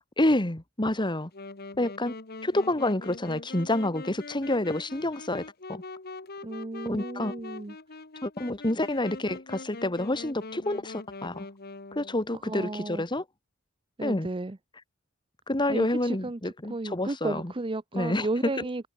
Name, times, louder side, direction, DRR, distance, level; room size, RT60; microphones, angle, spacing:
voice 1, 0.2-1.3 1.8-2.1 2.4-5.8 6.9-7.3 8.2-11.5 12.0-13.2 14.0-14.3 15.5-17.5 17.9-18.3, left 1 dB, 25° left, 2.0 m, -28 dB
Wind instrument woodwind instrument, 1.3-12.3, left 3 dB, 50° left, 1.8 m, -43 dB
voice 2, 6.4-7.8 12.4-13.0 14.0-14.6 15.7-18.9, right 2 dB, 25° right, 0.7 m, -33 dB
head